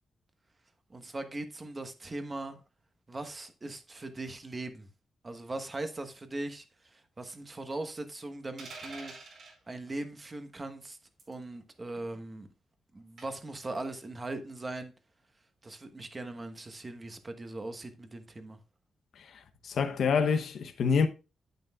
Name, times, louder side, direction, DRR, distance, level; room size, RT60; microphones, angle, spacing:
voice 1, 0.9-2.6 3.1-4.9 5.2-9.1 9.7-11.0 11.3-12.5 12.9-14.9 15.6-18.6, right 2 dB, 25° right, 1.2 m, -40 dB
sound 1, 8.6-9.6 11.2-11.4 13.2-13.5, right 3 dB, 65° right, 4.8 m, -46 dB
voice 2, 19.2-21.1, left 5 dB, 75° left, 0.9 m, -27 dB
9.2 x 8.8 x 2.3 m
cardioid pair, 115°, 0 cm